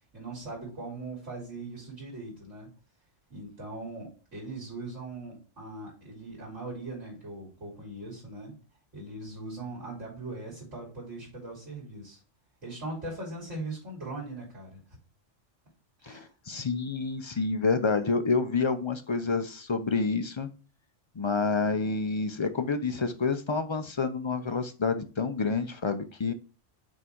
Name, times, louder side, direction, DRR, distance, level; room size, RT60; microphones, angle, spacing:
voice 1, 0.1-2.7 3.3-8.6 8.9-12.2 12.6-14.8 16.0-16.3, right 2 dB, 80° right, -5 dB, 3.5 m, -40 dB
voice 2, 16.5-20.5 21.2-26.3, left 4 dB, 40° left, 9 dB, 0.4 m, -28 dB
6.6 x 3.7 x 4.5 m, 0.35 s
omnidirectional pair, 1.2 m